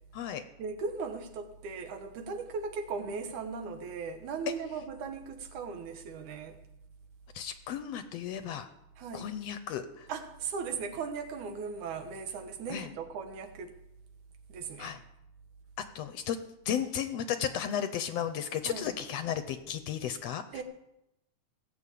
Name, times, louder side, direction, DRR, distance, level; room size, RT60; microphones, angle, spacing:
voice 1, 0.6-6.6 9.0-9.3 10.1-13.8 14.5-15.0 18.7-18.9 20.5-20.6, right 5 dB, 80° right, 7 dB, 2.7 m, -38 dB
voice 2, 7.3-8.7 9.1-10.1 12.7-12.9 14.8-15.0 15.9-16.4 16.7-20.6, left 9 dB, 75° left, 10 dB, 1.7 m, -34 dB
17.5 x 7.3 x 8.4 m, 0.86 s
omnidirectional pair, 3.4 m